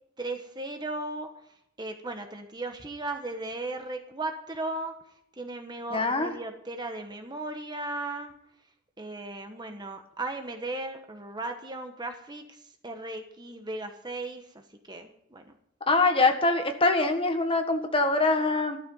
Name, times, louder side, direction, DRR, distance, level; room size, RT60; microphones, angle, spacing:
voice 1, 0.2-8.3 9.0-15.5, right 2 dB, 20° right, 5 dB, 1.2 m, -37 dB
voice 2, 5.9-6.3 15.9-18.8, left 3 dB, 25° left, 5 dB, 1.6 m, -24 dB
15.0 x 13.0 x 5.5 m, 0.73 s
head